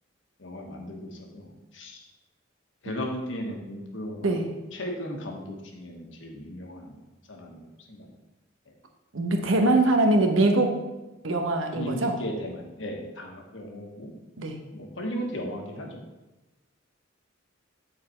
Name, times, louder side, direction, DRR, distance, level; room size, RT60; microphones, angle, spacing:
voice 1, 0.4-2.0 2.8-4.4 4.7-7.0 7.3-7.6 7.9-8.1 9.4-9.7 11.7-14.1 14.7-16.0, equal, 75° left, 1 dB, 1.3 m, -36 dB
voice 2, 9.1-10.8 11.2-12.2 14.4-14.6, right 2 dB, 85° right, 4 dB, 1.0 m, -22 dB
9.0 x 4.1 x 4.3 m, 1.1 s
head